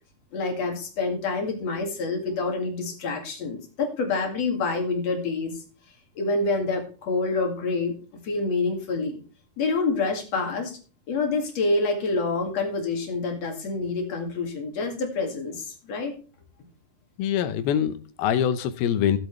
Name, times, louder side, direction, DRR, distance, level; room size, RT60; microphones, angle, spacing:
voice 1, 0.3-5.6 6.2-7.9 8.2-9.2 9.6-10.8 11.1-16.1, left 3 dB, 45° left, 3 dB, 2.9 m, -27 dB
voice 2, 17.2-19.2, left 9 dB, 75° left, 12 dB, 2.6 m, -24 dB
16.0 x 8.1 x 3.2 m, 0.38 s
omnidirectional pair, 4.6 m